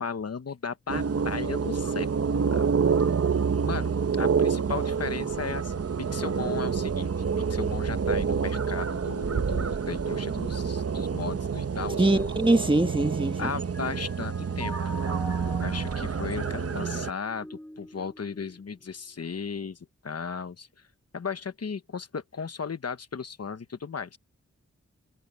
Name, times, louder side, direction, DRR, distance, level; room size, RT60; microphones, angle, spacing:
voice 1, 0.0-2.6 3.6-5.8 6.1-7.1 7.5-12.1 13.4-14.8 15.6-19.8 20.0-20.7 21.1-24.2, left 5 dB, 55° left, 1.1 m, -36 dB
sound 1, 0.9-17.1, right 6 dB, 55° right, 0.9 m, -28 dB
voice 2, 12.0-13.5, right 2 dB, 15° right, 1.4 m, -23 dB
Mallet percussion, 12.4-13.4 13.7-19.2, equal, 5° left, 4.1 m, -45 dB
wide cardioid pair, 100°, 29 cm